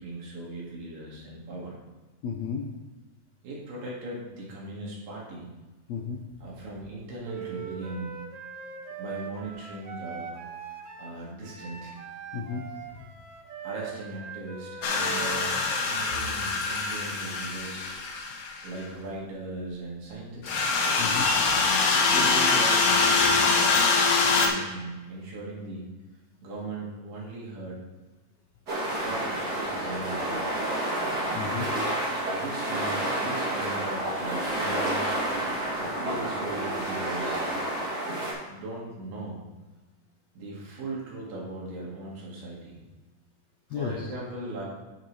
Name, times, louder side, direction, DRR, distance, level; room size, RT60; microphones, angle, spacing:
voice 1, 0.0-1.8 3.4-5.5 6.4-8.2 9.0-10.4 11.0-12.0 13.6-15.5 15.8-17.9 18.6-20.7 21.9-23.9 24.2-25.9 26.4-27.8 28.9-29.3 29.6-30.7 32.3-35.2 35.8-37.7 38.5-39.4 40.3-42.8 43.7-44.6, right 2 dB, 70° right, -4 dB, 3.7 m, -38 dB
voice 2, 2.2-2.6 5.9-6.2 12.3-12.6 12.9-13.0 21.0-21.3 31.3-31.7 43.7-44.0, left 6 dB, 85° left, 1 dB, 1.5 m, -32 dB
Wind instrument woodwind instrument, 7.2-15.6, right 8 dB, 90° right, 1.3 m, -41 dB
sound 1, 14.8-18.7 20.4-24.5, left 4 dB, 65° left, 2.1 m, -24 dB
sound 2, 28.7-38.3, right 1 dB, 30° right, 2.7 m, -29 dB
9.0 x 8.8 x 3.2 m, 1.1 s
omnidirectional pair, 4.0 m